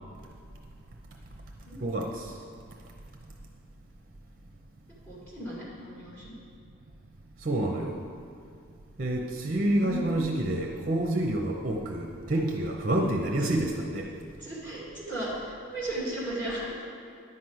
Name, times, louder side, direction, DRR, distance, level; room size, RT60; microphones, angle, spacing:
voice 1, 1.8-2.4 7.4-8.0 9.0-14.1, right 1 dB, 40° right, 2 dB, 0.8 m, -28 dB
voice 2, 5.0-6.3 9.8-10.2 13.0-13.1 14.4-16.7, right 1 dB, 10° left, -7 dB, 2.2 m, -35 dB
10.5 x 6.0 x 7.9 m, 2.3 s
head